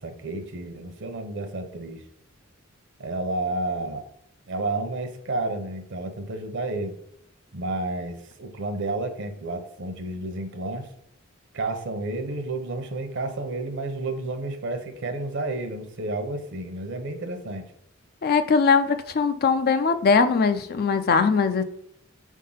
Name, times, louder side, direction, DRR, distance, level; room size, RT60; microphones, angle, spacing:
voice 1, 0.0-2.0 3.0-4.0 4.5-6.9 7.5-10.9 11.5-17.6, right 2 dB, 60° right, 7 dB, 0.9 m, -31 dB
voice 2, 18.2-21.6, left 5 dB, 50° left, 9 dB, 0.4 m, -21 dB
4.6 x 3.7 x 5.6 m, 0.73 s
head